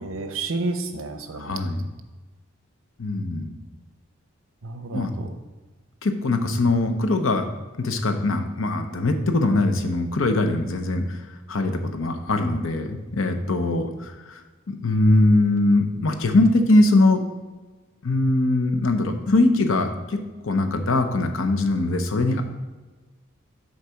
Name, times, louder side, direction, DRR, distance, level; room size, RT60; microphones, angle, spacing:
voice 1, 0.0-1.6 4.6-5.3, right 3 dB, 90° right, 7 dB, 0.8 m, -30 dB
voice 2, 1.4-1.9 3.0-3.6 4.9-5.1 6.0-7.4 7.8-11.2 11.5-14.1 14.7-17.2 18.0-20.2 20.4-22.4, left 2 dB, 80° left, 6 dB, 0.8 m, -21 dB
6.6 x 4.6 x 5.7 m, 1.3 s
head